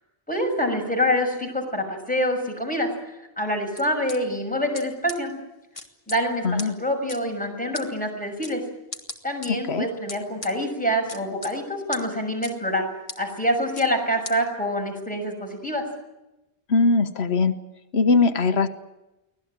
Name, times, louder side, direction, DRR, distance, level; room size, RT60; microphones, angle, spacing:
voice 1, 0.3-2.9 3.2-5.3 6.1-8.6 9.2-12.8 13.2-15.8, equal, 10° left, 1 dB, 6.4 m, -26 dB
sound 1, 3.8-4.2 4.7-4.8 5.1-5.2 5.8-6.2 6.6-6.7 7.1-7.2 7.7-7.9 8.4-8.5 8.9-9.5 10.1-10.5 11.1-11.5 11.9-12.0 12.4-12.5 13.1-13.2 13.8-13.9 14.3-14.4, left 2 dB, 30° left, 2.2 m, -35 dB
voice 2, 6.4-6.7 9.7-9.9 16.7-17.6 17.9-18.7, left 4 dB, 85° left, 8 dB, 1.4 m, -20 dB
24.5 x 18.0 x 9.0 m, 0.99 s
omnidirectional pair, 1.0 m